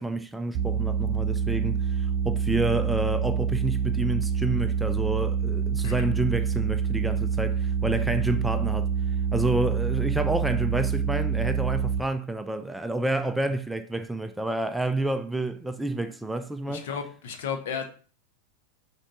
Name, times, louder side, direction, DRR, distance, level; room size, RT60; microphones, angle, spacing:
voice 1, 0.0-8.9 9.3-16.8, right 2 dB, 5° right, 0.4 m, -29 dB
sound 1, 0.5-12.0, right 7 dB, 35° right, 0.8 m, -26 dB
voice 2, 16.7-17.8, left 7 dB, 55° left, 1.1 m, -33 dB
6.2 x 4.5 x 3.8 m
figure-of-eight pair, 90°, 0 cm